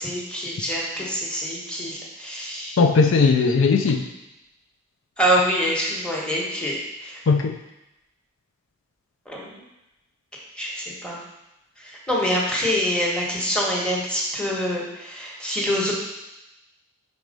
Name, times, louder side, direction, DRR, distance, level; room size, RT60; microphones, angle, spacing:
voice 1, 0.0-2.8 5.2-6.8 7.0-7.2 9.3-9.5 10.6-11.2 12.1-15.9, equal, 5° left, -4 dB, 1.2 m, -25 dB
voice 2, 2.8-4.0 7.3-7.5, left 4 dB, 65° left, 4 dB, 0.4 m, -18 dB
4.7 x 4.2 x 5.1 m, 0.93 s
head